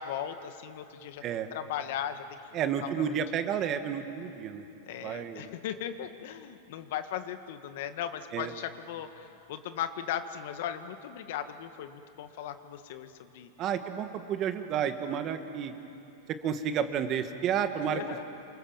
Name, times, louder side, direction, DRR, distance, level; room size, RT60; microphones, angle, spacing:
voice 1, 0.0-1.2 1.5-2.2 2.6-3.1 4.8-13.5 17.9-18.2, left 10 dB, 65° left, 9 dB, 1.6 m, -37 dB
voice 2, 1.2-1.5 2.5-4.7 5.0-5.5 8.3-8.5 13.6-15.7 16.3-18.0, right 8 dB, 30° right, 8 dB, 1.6 m, -31 dB
28.0 x 25.5 x 7.3 m, 2.8 s
supercardioid pair, 145°, 0 cm